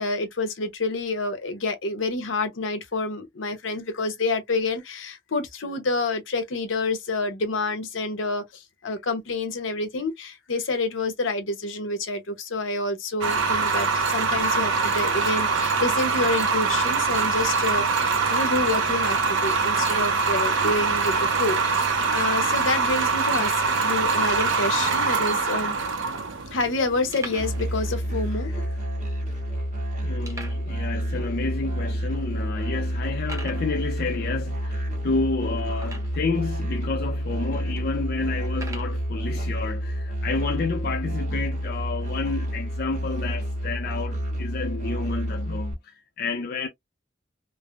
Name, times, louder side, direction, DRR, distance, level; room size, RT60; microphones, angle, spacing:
voice 1, 0.0-21.8 22.1-23.5 23.8-25.8 26.5-28.7, left 3 dB, 75° left, 0.8 m, -28 dB
sound 1, 13.2-28.2, right 4 dB, 80° right, 0.6 m, -24 dB
sound 2, 24.3-24.8 25.6-25.7 27.1-27.7 28.0-28.1 28.5-28.6 29.2-29.3 30.2-30.7 31.5-31.6 32.2-32.3 33.2-33.7 35.8-36.3 37.1-37.2 38.5-39.0, right 2 dB, 15° right, 0.7 m, -39 dB
Musical instrument, 27.4-45.7, equal, 35° right, 1.1 m, -29 dB
voice 2, 30.0-46.7, left 4 dB, 50° left, 0.4 m, -30 dB
3.2 x 2.0 x 2.4 m
head